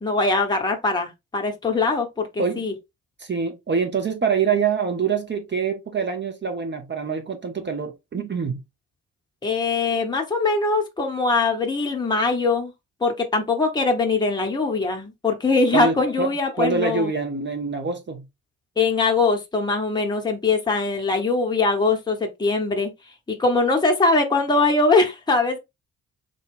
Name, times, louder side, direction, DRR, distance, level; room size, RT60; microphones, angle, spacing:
voice 1, 0.0-2.7 9.4-12.7 13.0-17.1 18.8-22.9 23.3-25.6, left 3 dB, 10° left, 0.9 m, -22 dB
voice 2, 3.2-8.6 15.7-16.3 16.6-18.2, right 5 dB, 25° right, 0.8 m, -25 dB
3.8 x 2.2 x 3.4 m
figure-of-eight pair, 40°, 42 cm